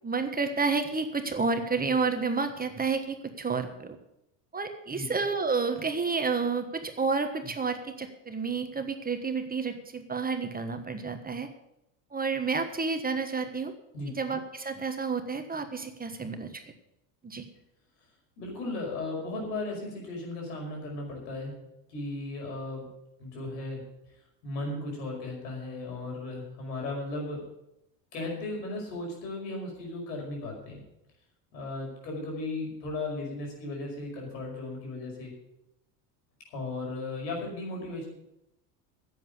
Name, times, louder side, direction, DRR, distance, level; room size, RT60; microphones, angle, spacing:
voice 1, 0.0-4.0 4.5-11.5 12.1-13.7 14.1-16.6 17.2-17.4, right 4 dB, 20° right, 7 dB, 1.4 m, -30 dB
voice 2, 18.4-21.5 21.9-22.9 23.2-23.8 24.4-27.4 28.1-30.8 31.5-35.3 36.5-38.1, left 2 dB, 80° left, 0 dB, 5.4 m, -36 dB
10.5 x 8.2 x 8.1 m, 0.85 s
hypercardioid pair, 90°, 48 cm